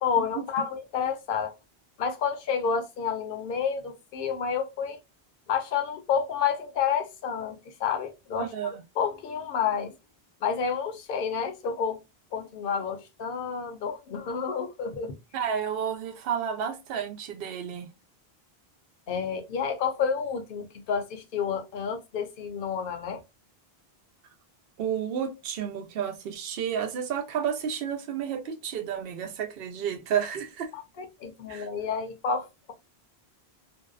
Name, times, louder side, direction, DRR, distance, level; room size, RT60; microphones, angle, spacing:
voice 1, 0.0-1.5 2.0-5.0 5.5-9.9 10.4-12.0 12.3-15.1 19.1-23.2 31.0-32.7, left 6 dB, 65° left, 0.8 m, -30 dB
voice 2, 8.4-8.8 15.3-17.9 24.8-30.7 31.5-31.7, right 8 dB, 70° right, 0.8 m, -31 dB
2.6 x 2.1 x 2.4 m
omnidirectional pair, 1.0 m